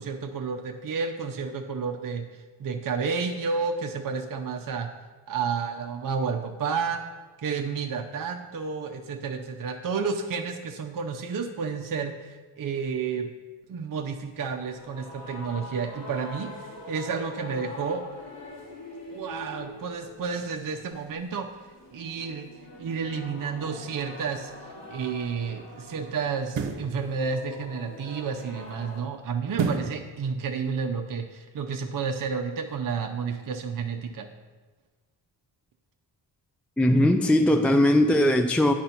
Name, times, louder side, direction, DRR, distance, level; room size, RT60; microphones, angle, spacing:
voice 1, 0.0-2.3 2.6-4.9 5.3-7.0 7.4-13.3 13.7-18.0 19.1-21.5 21.9-22.5 22.8-24.5 24.9-34.3, right 5 dB, 45° right, 3 dB, 0.6 m, -31 dB
sound 1, 14.3-29.0, left 2 dB, 65° left, 2.4 m, -44 dB
sound 2, 24.6-24.7 26.4-26.9 29.5-30.0 30.5-30.6, right 6 dB, 65° right, 0.9 m, -28 dB
voice 2, 36.8-38.7, left 1 dB, 5° left, 7 dB, 0.3 m, -20 dB
10.0 x 4.2 x 4.1 m, 1.3 s
supercardioid pair, 40°, 47 cm